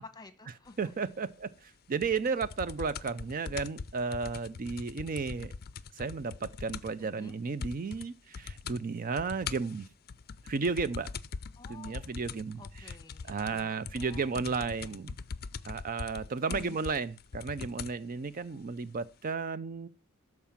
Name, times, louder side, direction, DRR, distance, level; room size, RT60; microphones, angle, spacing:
voice 1, 0.0-0.9 7.0-7.4 11.6-12.2 12.6-15.2 16.5-16.8, left 3 dB, 20° left, 1.2 m, -51 dB
voice 2, 0.8-5.5 5.9-9.9 10.4-11.1 11.7-12.9 13.3-15.1 15.6-19.9, right 4 dB, 40° right, 0.4 m, -33 dB
sound 1, 2.0-7.0 7.3-7.4 7.6-8.1 8.3-8.8 9.2-18.0 18.8-18.9, left 5 dB, 45° left, 0.5 m, -42 dB
13.0 x 4.7 x 7.1 m
head